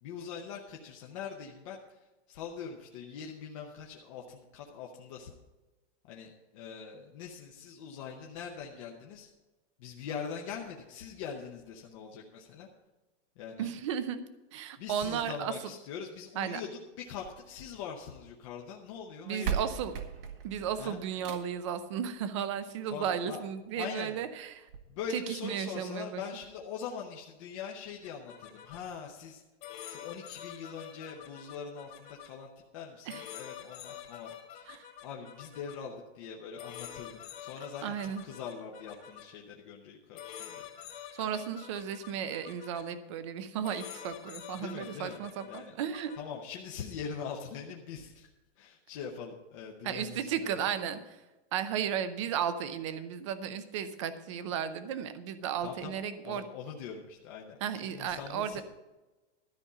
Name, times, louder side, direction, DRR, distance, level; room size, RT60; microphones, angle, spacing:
voice 1, 0.0-2.0 2.3-5.3 6.1-9.3 9.8-12.7 13.4-13.7 14.8-16.7 17.0-19.6 20.8-21.0 22.8-23.4 23.8-24.2 24.9-29.4 29.8-40.7 41.1-41.2 44.5-45.7 46.2-48.3 48.6-50.7 55.6-58.6, left 6 dB, 30° left, -1 dB, 0.8 m, -42 dB
voice 2, 13.6-14.2 14.5-15.5 16.4-16.6 19.3-19.9 20.4-24.7 25.1-26.2 33.1-33.2 34.7-34.8 37.8-38.2 41.1-46.1 49.8-51.2 51.5-56.5 57.6-58.6, right 8 dB, 25° right, 12 dB, 0.6 m, -34 dB
sound 1, 17.1-18.3 19.1-19.2 19.4-21.7 23.1-23.2 23.7-23.8 24.0-24.1 24.7-24.8, right 8 dB, 55° right, 1.3 m, -38 dB
sound 2, 28.0-28.8 29.6-32.3 33.1-35.8 36.6-39.2 40.2-42.8 43.6-46.2, left 10 dB, 45° left, 2.1 m, -47 dB
13.0 x 5.2 x 8.3 m, 1.1 s
supercardioid pair, 180°, 34 cm